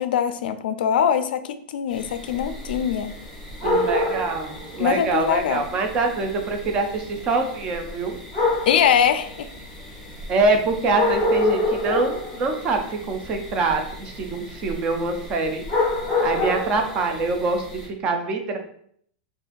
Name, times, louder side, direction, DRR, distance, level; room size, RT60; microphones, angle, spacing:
voice 1, 0.0-3.1 4.8-5.6 8.7-9.5, left 8 dB, 80° left, 10 dB, 0.3 m, -22 dB
sound 1, 1.9-17.9, left 2 dB, ahead, 1.0 m, -29 dB
voice 2, 3.6-8.2 10.3-15.6 16.2-17.7 18.0-18.6, right 3 dB, 20° right, 5 dB, 0.3 m, -24 dB
3.8 x 2.5 x 2.5 m, 0.64 s
supercardioid pair, 180°, 5 cm